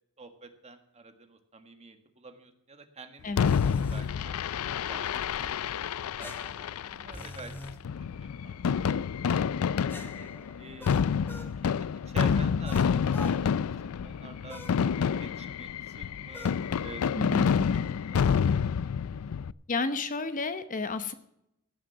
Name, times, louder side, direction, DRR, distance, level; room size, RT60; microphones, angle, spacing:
voice 1, 0.2-4.3 4.9-5.7 6.2-6.6 6.9-7.5 8.0-9.1 10.2-10.3 10.6-11.0 11.6-14.6 15.0-16.5 16.8-17.1 17.4-18.3, right 3 dB, 30° right, 7 dB, 1.6 m, -48 dB
voice 2, 3.2-3.6 17.1-17.7 19.7-21.1, left 3 dB, 40° left, 11 dB, 0.9 m, -31 dB
Fireworks, 3.4-19.5, left 7 dB, 80° left, 0.4 m, -28 dB
sound 1, 3.4-4.1 6.2-7.8 9.9-11.5 12.6-13.4 14.5-14.8 16.3-16.6, left 1 dB, 10° left, 1.2 m, -44 dB
17.0 x 6.5 x 7.1 m, 0.79 s
head